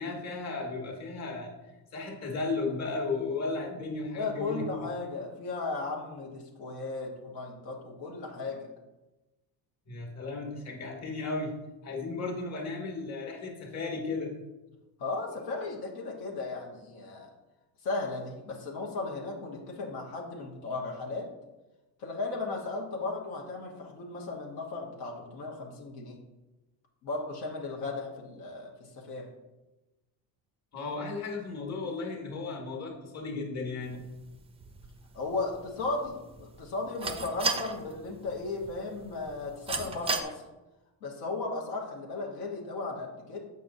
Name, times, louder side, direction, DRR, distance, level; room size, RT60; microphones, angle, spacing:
voice 1, 0.0-1.5 1.9-4.9 9.9-11.5 11.8-14.3 30.7-34.0, left 3 dB, 40° left, 0 dB, 1.4 m, -35 dB
voice 2, 4.1-8.7 15.0-17.3 17.8-21.3 22.0-26.2 27.0-29.3 35.1-40.4 41.0-43.4, left 3 dB, 85° left, -1 dB, 1.2 m, -36 dB
sound 1, 33.8-40.2, right 4 dB, 15° right, 0.4 m, -38 dB
6.8 x 5.4 x 2.6 m, 1.1 s
cardioid pair, 120°, 40 cm